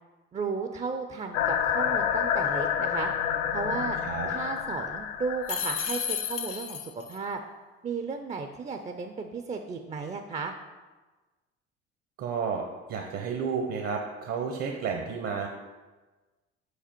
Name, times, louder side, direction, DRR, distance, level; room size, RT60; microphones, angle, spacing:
voice 1, 0.3-3.1 3.5-4.0 4.3-7.4 7.8-10.5, right 4 dB, 25° right, 5 dB, 0.4 m, -34 dB
sound 1, 1.3-6.4, left 8 dB, 80° left, 0.5 m, -29 dB
sound 2, 5.5-7.2, left 8 dB, 50° left, 0.7 m, -32 dB
voice 2, 12.2-12.6 12.9-15.5, right 6 dB, 55° right, 2 dB, 0.8 m, -31 dB
5.0 x 4.9 x 4.4 m, 1.2 s
supercardioid pair, 80°, 29 cm